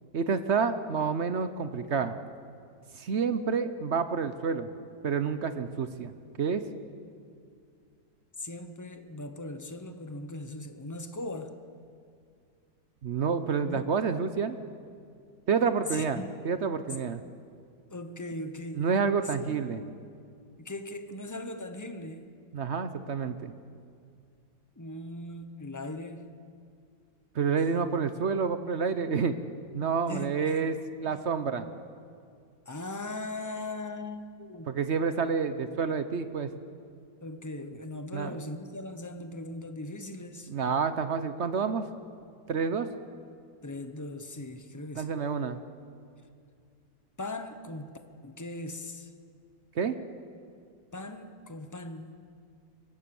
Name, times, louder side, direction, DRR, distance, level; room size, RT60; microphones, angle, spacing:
voice 1, 0.1-2.2 2.9-4.7 5.0-6.1 6.4-6.6 13.0-14.6 15.5-17.2 18.8-19.8 22.5-23.5 27.3-29.4 29.7-31.6 34.7-36.5 38.1-38.4 40.5-41.8 42.5-42.9 45.0-45.6 49.7-50.0, right 5 dB, 55° right, 11 dB, 0.8 m, -28 dB
voice 2, 8.4-11.6 13.6-13.9 15.9-16.4 16.9-17.0 17.9-18.8 19.4-19.6 20.6-22.3 24.8-26.3 30.1-30.7 31.0-31.2 31.6-31.7 32.7-34.7 37.2-40.5 43.6-45.2 47.2-47.9 48.2-49.1 50.9-52.2, left 2 dB, 25° left, 8 dB, 0.3 m, -39 dB
23.0 x 18.0 x 7.0 m, 2.3 s
omnidirectional pair, 2.1 m